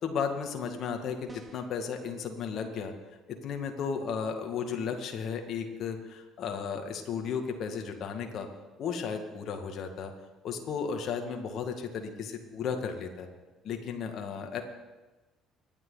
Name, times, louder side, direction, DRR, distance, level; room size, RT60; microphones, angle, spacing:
voice 1, 0.0-2.9 3.3-8.5 8.8-10.1 10.4-13.3 13.6-14.6, left 6 dB, 60° left, 4 dB, 2.1 m, -34 dB
sound 1, 1.3-1.8, right 1 dB, 15° right, 1.8 m, -51 dB
25.0 x 11.0 x 4.1 m, 1.2 s
hypercardioid pair, 55°, 0 cm